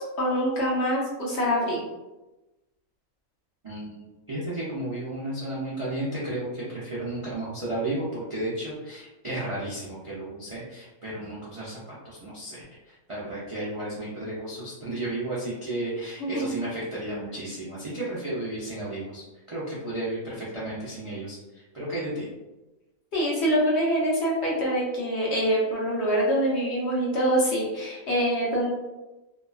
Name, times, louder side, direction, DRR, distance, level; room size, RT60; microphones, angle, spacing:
voice 1, 0.0-1.8 16.2-16.5 23.1-28.7, equal, 55° left, -5 dB, 0.9 m, -25 dB
voice 2, 3.6-22.3, right 1 dB, 50° right, -8 dB, 0.3 m, -33 dB
2.8 x 2.4 x 2.3 m, 1.1 s
omnidirectional pair, 1.5 m